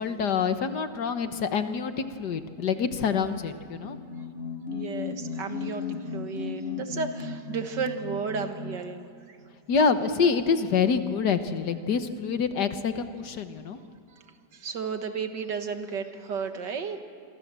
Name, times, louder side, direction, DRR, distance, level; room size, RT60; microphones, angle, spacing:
voice 1, 0.0-4.0 9.7-13.8, left 5 dB, 65° left, 9 dB, 1.7 m, -26 dB
sound 1, 3.8-9.0, left 5 dB, 40° left, 1.1 m, -35 dB
voice 2, 4.7-9.4 14.5-17.0, right 5 dB, 65° right, 7 dB, 2.2 m, -33 dB
28.0 x 24.0 x 7.6 m, 2.5 s
omnidirectional pair, 2.0 m